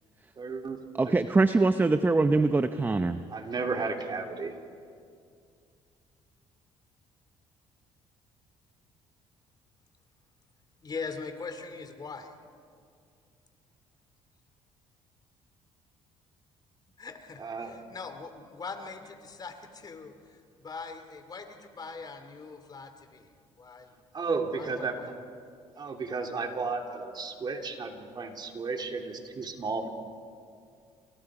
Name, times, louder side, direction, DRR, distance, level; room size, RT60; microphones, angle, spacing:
voice 1, 0.4-1.1 3.3-4.5 17.4-17.8 24.1-25.0 25.8-29.9, right 4 dB, 40° right, 3 dB, 3.1 m, -33 dB
voice 2, 1.0-3.2, right 3 dB, 15° right, 10 dB, 0.8 m, -23 dB
voice 3, 10.8-12.3 17.0-20.1 20.6-23.3 23.6-23.9 24.5-25.1, left 4 dB, 35° left, 8 dB, 2.7 m, -41 dB
29.0 x 27.5 x 5.0 m, 2.3 s
cardioid pair, 95°, 11 cm